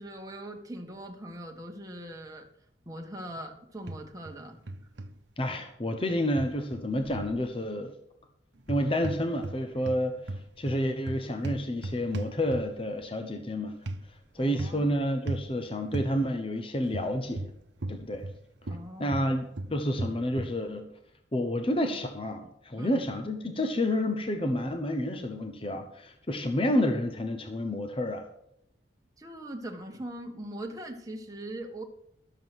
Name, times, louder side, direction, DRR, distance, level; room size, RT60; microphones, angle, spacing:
voice 1, 0.0-2.5 2.8-4.6 14.4-14.9 18.7-19.3 22.8-23.0 29.2-31.8, right 1 dB, 20° right, 2 dB, 1.5 m, -41 dB
sound 1, 3.9-4.4 4.7-5.1 6.4-7.4 8.6-9.6 9.8-12.9 13.9-14.0 14.6-14.9 15.3-15.5 15.9-16.1 16.9-18.4 18.6-20.6, right 1 dB, 75° right, 0.9 m, -36 dB
voice 2, 5.4-7.9 8.7-10.2 10.6-13.8 14.3-17.5 17.9-18.3 18.7-20.9 21.3-28.3, left 1 dB, 30° left, 7 dB, 0.9 m, -29 dB
12.5 x 7.5 x 6.2 m, 0.75 s
head